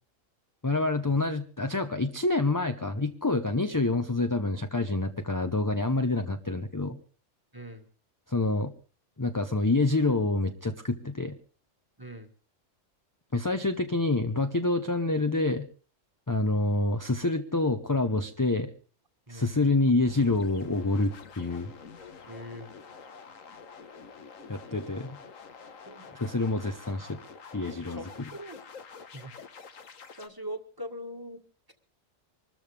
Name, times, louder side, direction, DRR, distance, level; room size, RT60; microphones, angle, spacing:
voice 1, 0.6-7.0 8.3-8.7 9.2-11.4 13.3-15.7 16.3-18.7 19.3-21.7 24.5-25.2 26.1-27.2 27.5-28.0, left 2 dB, 20° left, 7 dB, 0.7 m, -27 dB
voice 2, 7.5-7.9 12.0-12.3 19.3-19.7 22.3-22.7 25.9-26.4 27.9-28.6 29.1-29.3 30.2-31.4, equal, 15° right, 6 dB, 1.9 m, -42 dB
sound 1, 20.0-30.3, left 5 dB, 85° left, 1.6 m, -47 dB
25.0 x 13.5 x 3.4 m, 0.39 s
omnidirectional pair, 1.3 m